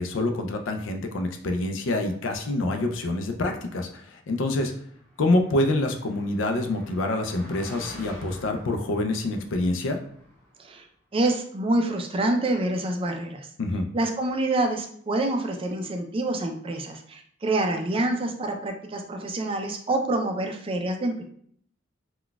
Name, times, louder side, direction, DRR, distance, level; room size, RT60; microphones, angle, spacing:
voice 1, 0.0-4.7 5.2-10.0 13.6-13.9, left 2 dB, 70° left, 5 dB, 0.4 m, -26 dB
Car passing by, 4.8-10.7, equal, 5° left, 1.1 m, -48 dB
voice 2, 11.1-13.5 13.9-21.2, right 2 dB, 25° right, 4 dB, 0.4 m, -27 dB
3.9 x 2.2 x 2.2 m, 0.62 s
head